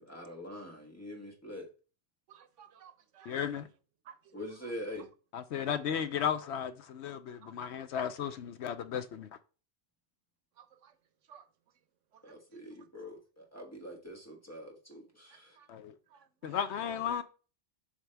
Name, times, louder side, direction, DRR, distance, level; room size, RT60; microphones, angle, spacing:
voice 1, 0.0-1.7 4.3-5.1 12.2-15.6, left 1 dB, 15° left, 1.3 m, -44 dB
voice 2, 2.3-3.3 4.0-4.7 7.4-7.5 10.6-10.9 11.3-11.5 12.1-12.4 15.3-15.7 16.1-16.6, right 8 dB, 80° right, 1.1 m, -57 dB
voice 3, 3.3-3.7 5.3-9.3 15.7-16.0 16.4-17.2, left 8 dB, 70° left, 0.9 m, -34 dB
7.6 x 5.1 x 3.4 m
omnidirectional pair, 1.2 m